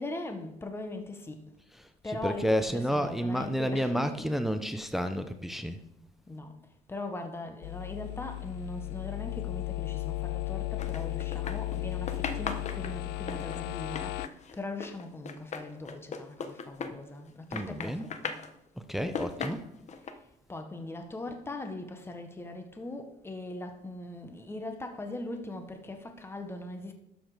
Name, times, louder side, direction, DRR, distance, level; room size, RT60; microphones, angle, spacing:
voice 1, 0.0-1.4 2.0-4.3 6.3-6.5 6.9-14.1 14.6-18.3 20.5-26.9, left 2 dB, 15° left, 1.4 m, -40 dB
voice 2, 1.7-5.8 17.5-18.1 18.8-19.6, equal, ahead, 0.8 m, -31 dB
sound 1, 7.6-14.3, left 21 dB, 80° left, 0.4 m, -35 dB
sound 2, 10.8-11.8 12.1-17.3 17.5-18.5 19.0-20.1, left 5 dB, 45° left, 1.2 m, -37 dB
12.0 x 7.2 x 5.1 m
cardioid pair, 110°, 17 cm